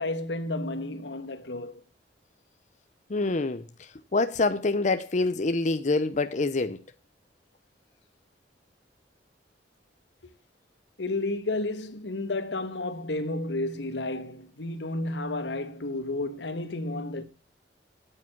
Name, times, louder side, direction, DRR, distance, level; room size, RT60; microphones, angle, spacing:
voice 1, 0.0-1.8 11.0-17.2, left 2 dB, 80° left, 1.4 m, -32 dB
voice 2, 3.1-6.8, left 3 dB, 45° left, 0.7 m, -26 dB
9.2 x 8.7 x 7.4 m
head